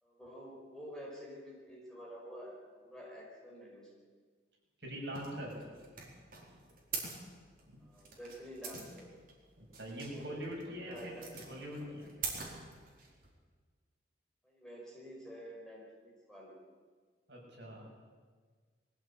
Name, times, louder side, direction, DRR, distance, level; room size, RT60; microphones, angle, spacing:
voice 1, 0.0-2.6 2.8-3.9 7.8-9.1 10.1-10.3 10.7-11.7 12.0-12.3 14.4-16.6, equal, 5° left, -4 dB, 5.2 m, -49 dB
voice 2, 4.8-5.6 7.7-7.8 9.6-12.1 17.3-17.9, equal, 60° right, -2 dB, 6.6 m, -43 dB
sound 1, 5.1-13.3, right 5 dB, 45° right, 4.4 m, -44 dB
21.5 x 15.5 x 8.8 m, 1.5 s
head